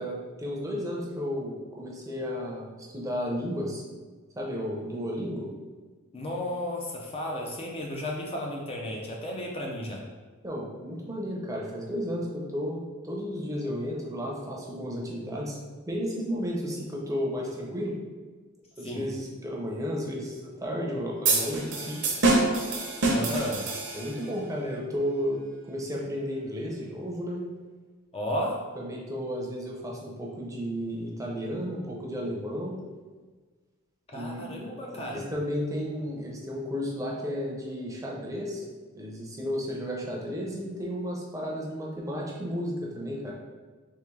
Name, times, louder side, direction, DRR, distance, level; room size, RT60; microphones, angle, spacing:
voice 1, 0.0-3.8 4.4-5.5 10.4-15.6 15.9-18.0 18.8-22.0 23.9-25.4 25.7-27.4 28.8-32.8 34.1-34.7 34.9-38.6 38.9-43.3, equal, 15° right, -3 dB, 0.6 m, -33 dB
voice 2, 6.1-10.0 18.8-19.1 23.1-23.7 28.1-28.7 34.1-35.3, left 1 dB, 25° left, -1 dB, 0.5 m, -33 dB
sound 1, 21.2-24.3, right 2 dB, 55° right, 0.7 m, -26 dB
3.5 x 3.2 x 3.2 m, 1.4 s
head